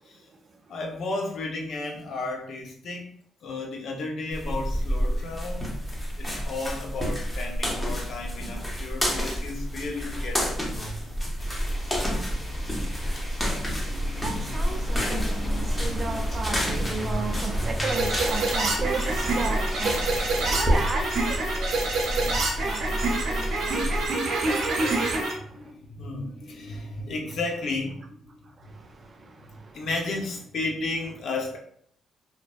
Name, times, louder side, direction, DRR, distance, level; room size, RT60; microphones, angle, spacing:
voice 1, 0.7-3.1 3.4-5.7 6.1-11.2 22.1-22.6 23.2-23.3 24.1-24.3 24.5-24.9 25.3-28.2 29.7-31.6, left 2 dB, 65° left, 0.6 m, -34 dB
sound 1, 4.3-20.8, equal, 15° left, 0.7 m, -29 dB
sound 2, 11.4-24.1, equal, 35° left, 1.3 m, -33 dB
voice 2, 13.5-25.7 28.6-29.9, right 4 dB, 40° right, 0.4 m, -36 dB
sound 3, 17.9-25.3, right 2 dB, 75° right, 0.7 m, -27 dB
2.6 x 2.1 x 2.3 m
cardioid pair, 90°, 0 cm